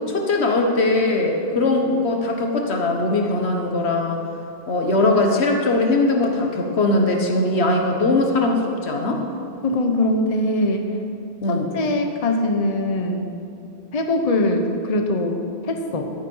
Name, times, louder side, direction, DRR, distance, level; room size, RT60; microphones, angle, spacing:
voice 1, 0.1-4.2 4.7-9.2 11.4-11.7, left 2 dB, 80° left, 2 dB, 1.5 m, -20 dB
voice 2, 9.6-11.0 11.5-13.3 13.9-16.1, left 1 dB, 40° left, 4 dB, 0.9 m, -22 dB
12.0 x 9.3 x 5.5 m, 2.6 s
omnidirectional pair, 1.1 m